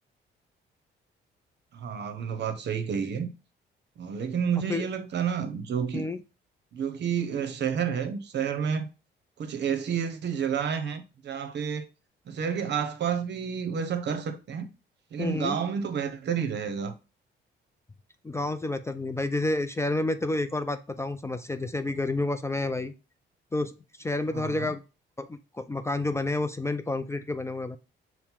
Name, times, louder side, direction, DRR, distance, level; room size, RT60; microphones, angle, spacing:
voice 1, 1.7-3.3 4.0-6.1 6.7-8.9 9.4-11.8 12.3-14.7 15.1-16.9 24.3-24.7, right 7 dB, 60° right, 0.8 m, -30 dB
voice 2, 15.2-15.6 18.2-22.9 23.5-24.8 25.2-27.8, left 2 dB, 15° left, 0.3 m, -30 dB
5.4 x 2.1 x 4.4 m
cardioid pair, 90°, 20 cm